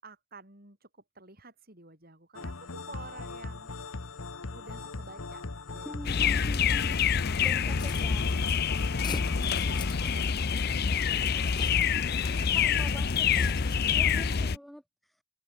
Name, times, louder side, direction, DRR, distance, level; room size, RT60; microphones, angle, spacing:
voice 1, 0.0-3.7 4.5-5.4 5.7-6.3 7.4-8.1 8.9-12.8 14.1-14.5, right 3 dB, 45° right, 7.9 m, -51 dB
sound 1, 2.3-10.2, left 3 dB, 75° left, 1.2 m, -40 dB
voice 2, 5.8-8.2 12.5-13.3 13.7-14.8, equal, ahead, 1.5 m, -44 dB
sound 2, 6.0-14.6, left 6 dB, 50° left, 0.6 m, -27 dB
sound 3, 7.7-14.1, left 3 dB, 20° left, 2.6 m, -45 dB
open air
head